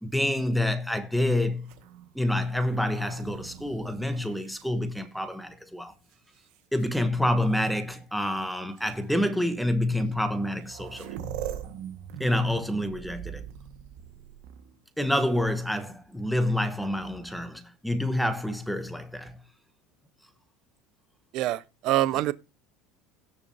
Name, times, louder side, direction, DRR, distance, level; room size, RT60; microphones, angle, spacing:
voice 1, 0.0-1.7 2.1-5.9 6.7-11.1 12.2-13.4 15.0-19.4, left 1 dB, ahead, 1.1 m, -27 dB
sound 1, 1.6-5.4 6.1-6.8 7.9-8.0 8.8-8.9 10.1-10.2 10.4-14.8 16.8-17.5, right 9 dB, 70° right, 1.6 m, -42 dB
voice 2, 21.3-22.3, right 15 dB, 50° right, 0.5 m, -25 dB
17.0 x 6.8 x 2.8 m
cardioid pair, 155°, 0 cm